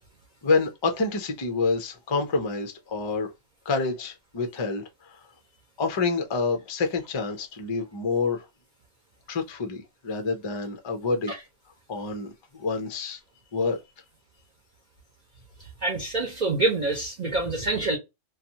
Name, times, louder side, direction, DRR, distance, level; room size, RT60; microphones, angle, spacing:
voice 1, 0.4-3.3 3.7-5.2 5.8-8.5 9.3-11.3 11.9-12.3 12.6-13.2 13.5-13.8, left 4 dB, 45° left, 0.3 m, -27 dB
voice 2, 15.8-18.0, right 3 dB, 45° right, 0.8 m, -26 dB
2.6 x 2.3 x 2.7 m
omnidirectional pair, 1.2 m